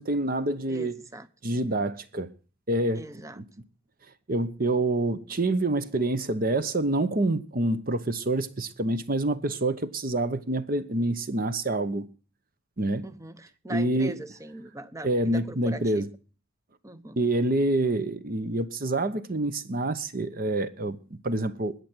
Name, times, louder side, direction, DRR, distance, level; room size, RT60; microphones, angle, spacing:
voice 1, 0.0-1.0 1.4-2.3 2.7-3.0 3.4-3.5 4.3-12.1 12.8-13.1 13.7-14.2 15.0-16.1 17.2-21.8, right 2 dB, 40° right, 0.9 m, -27 dB
voice 2, 0.7-1.3 2.9-3.4 13.0-16.1 16.8-17.2, right 1 dB, 15° right, 0.7 m, -41 dB
20.5 x 6.8 x 6.1 m
head